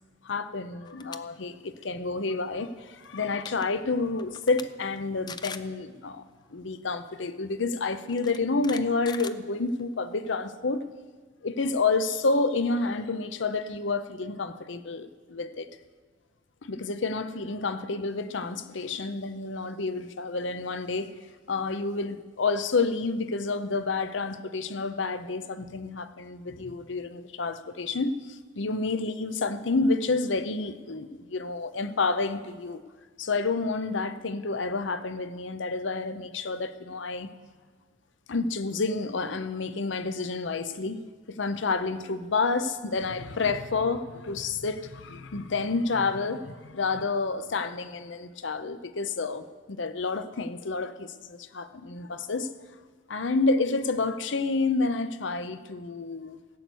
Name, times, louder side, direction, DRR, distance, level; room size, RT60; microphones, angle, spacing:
voice 1, 0.2-6.2 6.5-10.8 11.4-15.7 16.6-21.1 21.5-32.8 33.2-37.3 38.3-41.0 41.3-52.5 53.1-56.4, left 3 dB, 70° left, 12 dB, 0.7 m, -29 dB
sound 1, 0.8-1.2 1.6-1.8 3.0-3.1 3.3-3.7 4.2-4.6 5.0-5.1 5.3-5.7 6.9-7.0 8.1-9.9, left 6 dB, 20° left, 0.4 m, -41 dB
16.0 x 8.2 x 6.3 m, 1.5 s
head